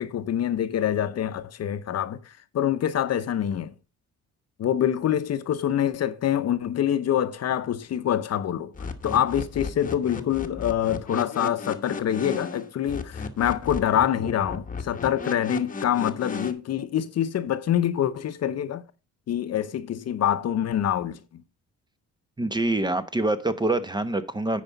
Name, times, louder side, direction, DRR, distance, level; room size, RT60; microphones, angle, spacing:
voice 1, 0.0-3.7 4.6-18.8 19.3-21.2, left 10 dB, 55° left, 0.8 m, -26 dB
sound 1, 8.7-16.5, left 4 dB, 25° left, 1.1 m, -35 dB
voice 2, 22.4-24.6, right 2 dB, 15° right, 0.8 m, -25 dB
9.0 x 5.0 x 5.2 m
cardioid pair, 90°, 30 cm